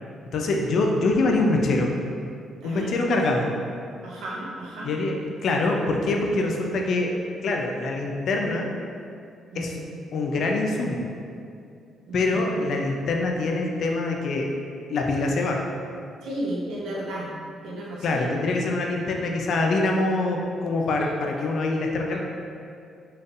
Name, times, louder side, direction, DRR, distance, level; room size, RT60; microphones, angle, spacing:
voice 1, 0.3-1.9 2.6-3.5 4.8-7.1 7.4-8.7 9.5-9.7 10.1-11.1 12.1-14.5 14.9-15.7 18.0-22.2, left 2 dB, 65° left, 1 dB, 0.5 m, -24 dB
voice 2, 4.0-5.0 9.5-9.8 12.1-12.3 16.2-17.3 17.6-18.3 22.1-22.2, right 1 dB, 85° right, -4 dB, 0.8 m, -33 dB
4.3 x 3.3 x 2.5 m, 2.5 s
cardioid pair, 90°, 0 cm